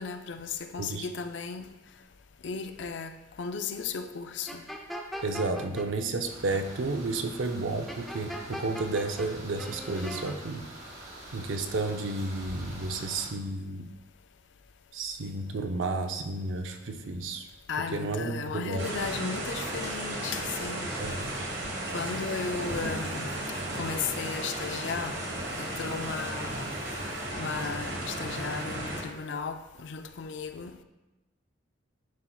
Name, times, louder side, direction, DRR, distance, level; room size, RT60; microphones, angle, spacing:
voice 1, 0.0-1.7 2.4-4.6 9.9-10.1 17.7-21.2 21.9-23.3 23.7-25.2 25.6-26.7 27.4-30.8, left 5 dB, 65° left, 0.4 m, -35 dB
sound 1, 4.5-5.9 7.9-9.3 9.6-10.4, equal, ahead, 0.4 m, -39 dB
voice 2, 5.2-10.6 11.3-13.9 14.9-17.5 17.9-18.9 21.0-21.3, right 3 dB, 80° right, 0.6 m, -32 dB
sound 2, 6.2-13.3, right 1 dB, 35° right, 1.4 m, -45 dB
sound 3, 18.8-29.0, right 1 dB, 65° right, 1.3 m, -34 dB
10.5 x 4.4 x 2.3 m
head